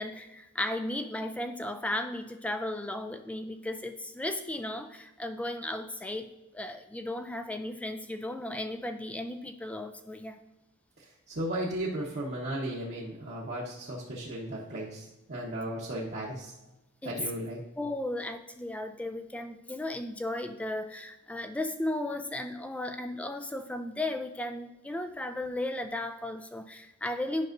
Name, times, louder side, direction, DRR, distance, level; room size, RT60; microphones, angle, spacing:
voice 1, 0.0-6.3 6.5-10.4 17.0-17.2 17.8-27.5, left 1 dB, 5° left, 7 dB, 0.3 m, -35 dB
voice 2, 11.3-16.5 17.0-17.6, right 1 dB, 50° right, -6 dB, 1.0 m, -35 dB
10.5 x 5.5 x 2.6 m, 0.99 s
head